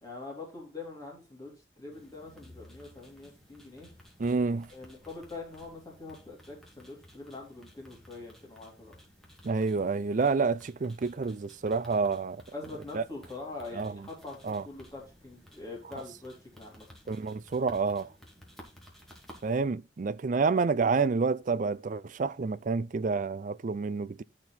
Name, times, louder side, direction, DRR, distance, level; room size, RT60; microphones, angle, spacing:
voice 1, 0.0-3.9 4.7-8.9 12.5-16.9, left 3 dB, 20° left, 3.4 m, -44 dB
sound 1, 1.9-19.6, equal, ahead, 2.1 m, -55 dB
voice 2, 4.2-4.7 9.4-12.4 12.9-13.0 13.7-14.0 14.4-14.6 17.1-18.1 19.4-24.2, right 4 dB, 45° right, 0.4 m, -28 dB
12.5 x 4.4 x 4.0 m
head